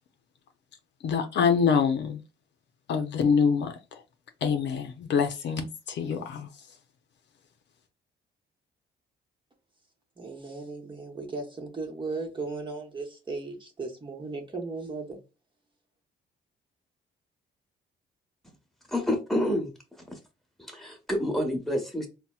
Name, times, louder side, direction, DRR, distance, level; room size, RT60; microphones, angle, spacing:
voice 1, 1.0-2.2 2.9-3.7 4.4-6.5, left 6 dB, 65° left, 6 dB, 0.5 m, -25 dB
voice 2, 10.2-15.2, right 3 dB, 25° right, 2 dB, 0.9 m, -36 dB
voice 3, 18.9-20.0 20.6-22.1, left 1 dB, ahead, 2 dB, 1.1 m, -29 dB
4.0 x 2.1 x 2.3 m, 0.29 s
cardioid pair, 90°, 20 cm